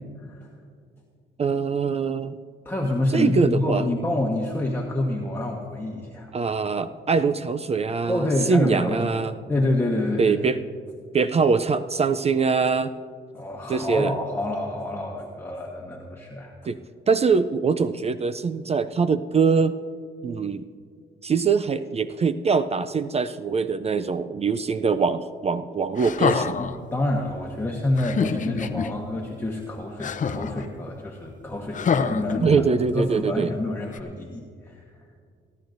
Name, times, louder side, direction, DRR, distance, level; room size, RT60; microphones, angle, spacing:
voice 1, 1.4-2.4 3.1-3.8 6.3-9.3 10.2-10.6 11.1-12.9 13.7-14.1 16.6-16.8 17.1-19.8 20.2-20.7 21.2-26.6 32.4-33.5, right 5 dB, 30° right, 12 dB, 0.4 m, -23 dB
voice 2, 2.6-6.3 8.1-9.1 9.5-10.4 13.3-16.6 26.6-32.6 32.9-34.9, left 1 dB, 10° left, -2 dB, 1.3 m, -27 dB
sound 1, 26.0-26.8 28.0-28.9 30.0-30.7 31.7-32.9 33.9-34.0, left 6 dB, 40° left, 0.6 m, -26 dB
27.0 x 10.5 x 2.6 m, 2.2 s
cardioid pair, 90°, 20 cm